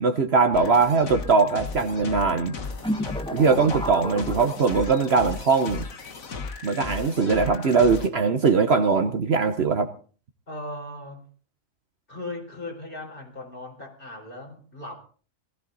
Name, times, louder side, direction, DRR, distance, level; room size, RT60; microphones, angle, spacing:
voice 1, 0.0-2.5 3.3-5.8 6.6-9.9, right 4 dB, 55° right, 7 dB, 1.2 m, -21 dB
sound 1, 0.5-8.1, left 4 dB, 90° left, 2.0 m, -36 dB
sound 2, 2.8-5.2, equal, 5° left, 0.9 m, -32 dB
voice 2, 10.5-11.2 12.1-14.9, left 2 dB, 40° left, 1 dB, 4.7 m, -38 dB
19.0 x 14.5 x 4.0 m, 0.40 s
omnidirectional pair, 1.4 m